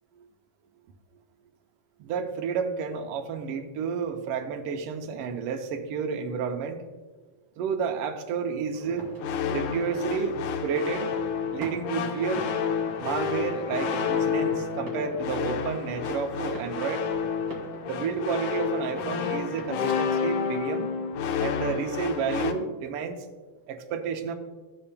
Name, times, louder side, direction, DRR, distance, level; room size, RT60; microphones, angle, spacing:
voice 1, 2.0-6.8 7.6-9.1 9.5-11.2 11.5-12.5 13.0-17.0 17.8-20.9 21.4-23.2 23.7-24.3, right 6 dB, 85° right, 4 dB, 1.3 m, -31 dB
sound 1, 8.7-20.7, right 1 dB, 35° right, 2.2 m, -46 dB
sound 2, 9.2-22.5, left 7 dB, 85° left, 2.1 m, -30 dB
14.0 x 7.1 x 2.2 m, 1.4 s
omnidirectional pair, 3.5 m